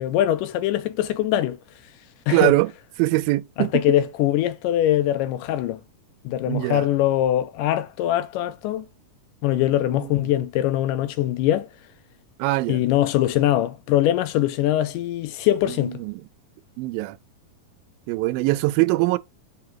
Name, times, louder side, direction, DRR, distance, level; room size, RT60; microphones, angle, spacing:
voice 1, 0.0-1.6 2.3-2.5 3.6-5.8 6.3-8.9 9.4-11.7 12.7-16.0, left 13 dB, 80° left, 2.0 m, -22 dB
voice 2, 2.3-2.7 3.0-3.8 6.5-6.9 9.9-10.1 12.4-12.8 16.0-16.1 16.8-17.2 18.1-19.2, right 19 dB, 85° right, 2.3 m, -22 dB
6.2 x 4.8 x 4.4 m
omnidirectional pair, 4.1 m